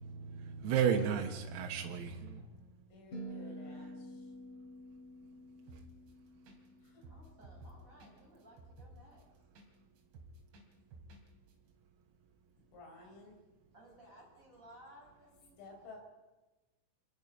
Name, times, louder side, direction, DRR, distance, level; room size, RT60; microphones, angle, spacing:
voice 1, 0.0-2.7, right 8 dB, 85° right, 1 dB, 4.2 m, -34 dB
voice 2, 2.9-4.3 6.8-7.1 12.7-13.5 15.6-16.0, left 3 dB, 75° left, 2 dB, 7.1 m, -54 dB
sound 1, 3.1-7.4, equal, 30° left, 5.0 m, -49 dB
sound 2, 5.7-6.1 6.5-6.6 6.9-9.7 10.0-11.2 11.5-11.6, right 2 dB, 60° right, 4.7 m, -54 dB
voice 3, 7.1-9.2 9.6-9.8 13.0-13.1 13.7-15.7, equal, 15° right, -2 dB, 7.0 m, -59 dB
27.5 x 19.5 x 5.4 m, 1.2 s
omnidirectional pair, 6.0 m